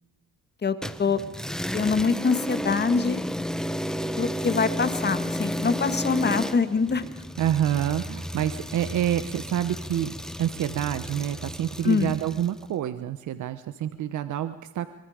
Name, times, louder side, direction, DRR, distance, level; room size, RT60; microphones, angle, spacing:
voice 1, 0.6-1.2 1.7-3.2 4.2-7.0 11.8-12.1, left 5 dB, 35° left, 10 dB, 1.8 m, -24 dB
sound 1, 0.8-12.6, equal, ahead, 1.2 m, -32 dB
voice 2, 7.4-10.1 10.4-14.9, right 11 dB, 75° right, 11 dB, 1.1 m, -27 dB
25.0 x 23.5 x 5.1 m, 1.1 s
cardioid pair, 90°, 30 cm